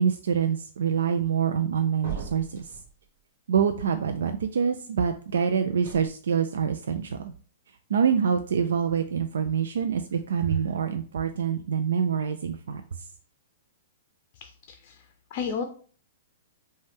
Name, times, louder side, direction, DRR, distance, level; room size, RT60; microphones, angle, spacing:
voice 1, 0.0-2.7 3.5-7.3 7.9-12.8, right 7 dB, 90° right, 7 dB, 0.3 m, -26 dB
sound 1, 2.0-2.9 5.8-6.1, right 6 dB, 75° right, 1.5 m, -37 dB
voice 2, 14.4-14.9 15.3-15.6, left 6 dB, 35° left, 6 dB, 0.5 m, -32 dB
5.3 x 2.2 x 3.4 m, 0.43 s
hypercardioid pair, 165°, 0 cm